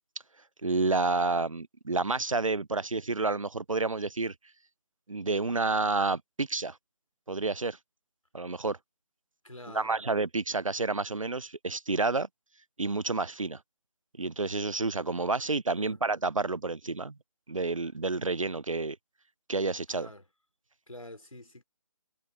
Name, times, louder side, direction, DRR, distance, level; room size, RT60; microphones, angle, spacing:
voice 1, 0.6-4.3 5.1-6.8 7.3-7.8 8.3-8.8 9.7-12.3 12.8-13.6 14.2-17.2 17.5-19.0 19.5-20.1, right 3 dB, 80° right, 0.8 m, -29 dB
voice 2, 9.4-10.0 15.8-16.0 19.9-20.2 20.9-21.6, left 1 dB, 85° left, 3.3 m, -47 dB
figure-of-eight pair, 145°, 17 cm